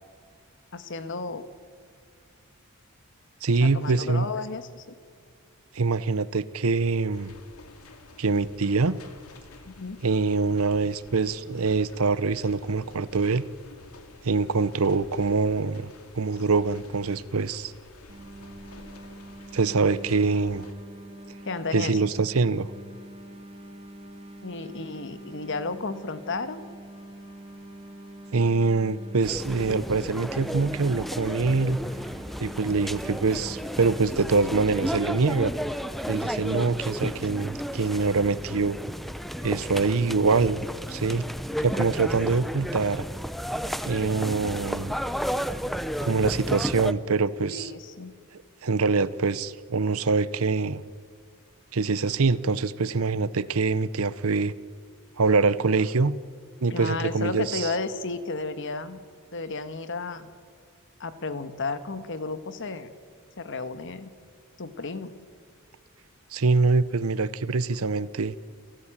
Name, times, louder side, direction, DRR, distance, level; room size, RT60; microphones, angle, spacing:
voice 1, 0.7-1.4 3.6-4.8 9.6-10.0 21.4-22.0 24.4-26.6 47.5-48.1 56.7-59.0 59.3-60.3 61.0-62.9 63.4-64.1 64.6-65.1, left 3 dB, 60° left, 11 dB, 1.5 m, -33 dB
voice 2, 3.4-4.3 5.7-7.3 8.2-9.0 10.0-13.4 14.2-17.7 19.5-20.6 21.7-22.7 28.3-31.8 32.4-35.5 36.1-38.8 39.4-41.2 41.6-43.0 43.8-44.9 46.0-47.7 48.6-50.8 51.7-54.5 55.2-56.1 56.6-57.7 66.3-68.3, right 4 dB, 70° right, 18 dB, 0.7 m, -24 dB
sound 1, 7.1-20.7, left 2 dB, 90° left, 2.4 m, -50 dB
sound 2, 18.1-34.1, right 1 dB, 25° right, 2.4 m, -45 dB
sound 3, 29.2-46.9, equal, ahead, 0.7 m, -33 dB
28.5 x 14.0 x 8.9 m, 2.2 s
head